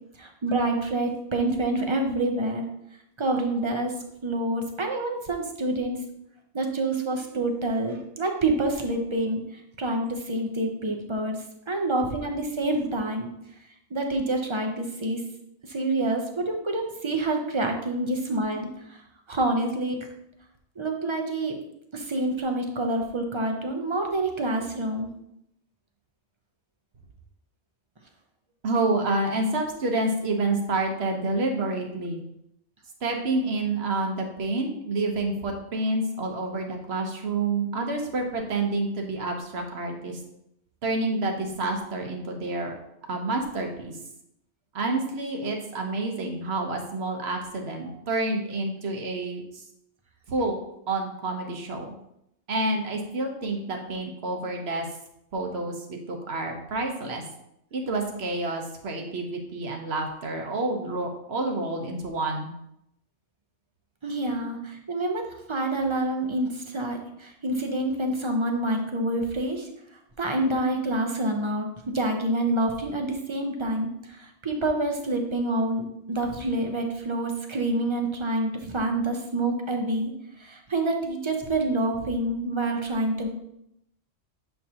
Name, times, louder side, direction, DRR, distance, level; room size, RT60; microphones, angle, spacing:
voice 1, 0.2-2.6 3.2-3.9 4.2-6.0 6.5-9.4 9.8-11.4 11.7-13.3 13.9-15.2 15.7-19.0 19.3-20.1 20.8-21.6 21.9-25.1 64.0-69.7 70.2-75.8 76.1-80.1 80.4-83.3, right 2 dB, 30° right, 3 dB, 0.6 m, -27 dB
voice 2, 28.6-32.2 33.0-40.2 40.8-42.7 43.1-44.0 44.7-49.6 50.3-50.5 50.9-51.9 52.5-54.9 55.3-57.2 57.7-62.5, right 2 dB, 65° right, 3 dB, 1.2 m, -28 dB
7.3 x 4.7 x 2.8 m, 0.79 s
omnidirectional pair, 1.2 m